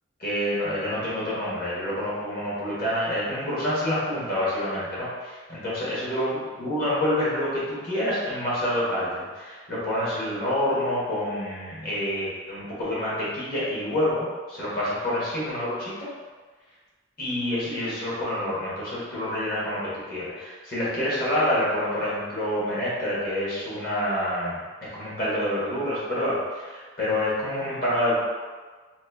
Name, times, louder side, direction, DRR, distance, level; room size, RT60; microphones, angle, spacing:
voice 1, 0.2-16.1 17.2-28.1, left 1 dB, 50° left, -8 dB, 1.1 m, -27 dB
3.0 x 2.3 x 3.3 m, 1.4 s
head